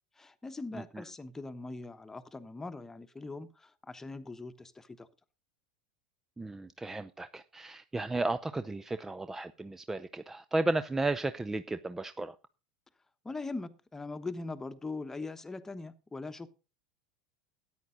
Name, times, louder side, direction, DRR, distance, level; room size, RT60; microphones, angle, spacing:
voice 1, 0.2-5.1 13.2-16.5, left 3 dB, 10° left, 1.1 m, -41 dB
voice 2, 6.4-12.3, right 2 dB, 10° right, 0.5 m, -34 dB
13.5 x 9.7 x 3.9 m
figure-of-eight pair, 85°, 3 cm